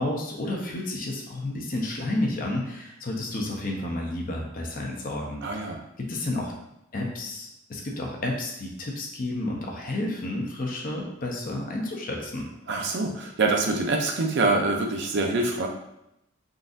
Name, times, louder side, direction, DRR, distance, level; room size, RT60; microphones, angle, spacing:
voice 1, 0.0-5.4 6.0-6.5 6.9-12.5, left 1 dB, 45° left, 0 dB, 0.6 m, -31 dB
voice 2, 5.4-5.8 12.7-15.7, right 3 dB, 60° right, 2 dB, 0.5 m, -25 dB
3.8 x 2.6 x 2.5 m, 0.83 s
head